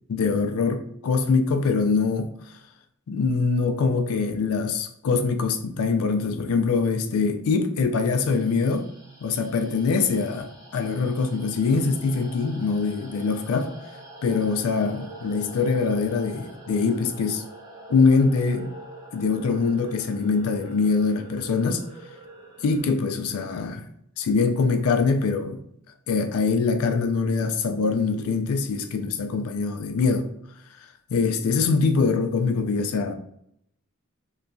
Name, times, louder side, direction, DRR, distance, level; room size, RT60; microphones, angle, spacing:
voice 1, 0.1-2.3 3.1-8.9 9.2-13.7 14.2-17.4 17.9-18.7 19.1-21.8 22.6-23.9 24.2-25.6 26.1-30.3 31.1-33.1, left 4 dB, 90° left, 0.4 m, -23 dB
sound 1, 8.3-22.9, right 2 dB, 15° right, 0.5 m, -45 dB
2.9 x 2.2 x 2.5 m
head